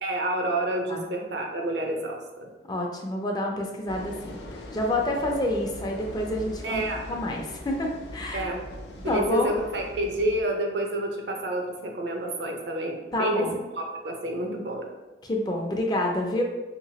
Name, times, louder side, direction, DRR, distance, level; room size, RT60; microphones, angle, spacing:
voice 1, 0.0-2.5 6.6-7.0 8.3-8.6 9.0-13.4 13.8-14.9, right 1 dB, 80° right, 2 dB, 0.6 m, -29 dB
voice 2, 2.7-6.8 7.1-8.5 9.1-9.5 13.1-13.6 15.2-16.4, left 1 dB, 25° left, 0 dB, 0.4 m, -28 dB
sound 1, 3.9-10.4, left 1 dB, 85° left, 0.5 m, -41 dB
3.3 x 2.9 x 2.8 m, 1.1 s
head